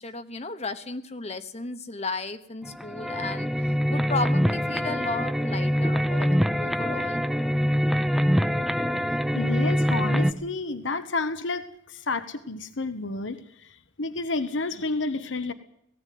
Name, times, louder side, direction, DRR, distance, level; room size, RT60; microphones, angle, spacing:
voice 1, 0.0-3.5 3.9-7.2, left 3 dB, 35° left, 9 dB, 1.1 m, -34 dB
sound 1, 2.6-10.3, equal, ahead, 0.7 m, -24 dB
voice 2, 9.3-13.4 14.0-15.5, left 3 dB, 75° left, 11 dB, 1.2 m, -30 dB
18.0 x 16.0 x 9.4 m, 0.73 s
head